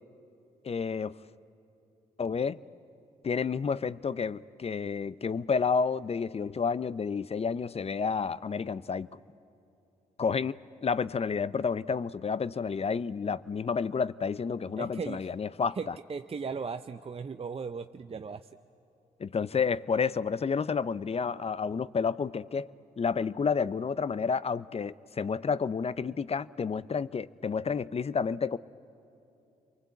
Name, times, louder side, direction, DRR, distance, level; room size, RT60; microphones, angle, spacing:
voice 1, 0.6-1.2 2.2-2.6 3.2-9.1 10.2-15.8 19.2-22.7 23.0-28.6, left 5 dB, 40° left, 18 dB, 0.7 m, -30 dB
voice 2, 14.8-15.3 15.8-18.5, right 5 dB, 35° right, 8 dB, 0.7 m, -37 dB
30.0 x 23.5 x 8.4 m, 2.8 s
hypercardioid pair, 45°, 17 cm